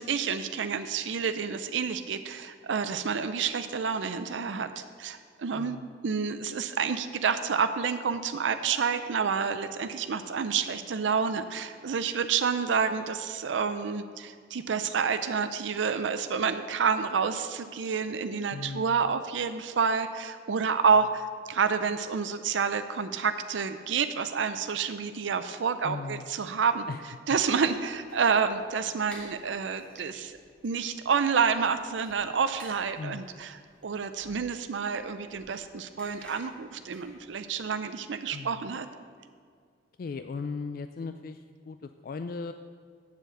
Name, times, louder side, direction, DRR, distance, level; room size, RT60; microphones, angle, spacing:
voice 1, 0.0-5.8 6.0-26.8 27.3-30.4 30.6-38.9, right 6 dB, 75° right, 10 dB, 0.5 m, -29 dB
voice 2, 5.5-5.9 18.5-19.1 25.8-26.3 26.9-27.0 33.0-33.3 38.3-38.7 40.0-42.5, left 4 dB, 50° left, 9 dB, 0.3 m, -38 dB
sound 1, 27.6-37.6, equal, 5° left, 1.4 m, -55 dB
7.4 x 6.9 x 7.8 m, 2.1 s
head